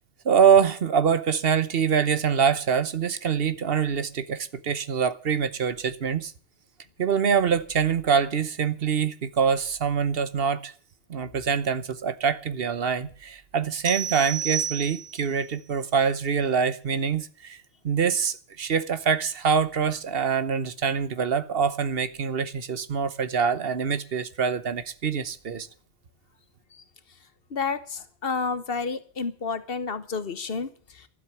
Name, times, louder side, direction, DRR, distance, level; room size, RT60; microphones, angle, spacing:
voice 1, 0.2-6.3 7.0-10.7 11.1-25.7, right 6 dB, 60° right, 1.1 m, -24 dB
sound 1, 13.8-15.4, right 8 dB, 30° right, 1.0 m, -31 dB
voice 2, 27.5-31.1, left 4 dB, 60° left, 1.4 m, -30 dB
12.5 x 7.9 x 10.0 m
omnidirectional pair, 1.1 m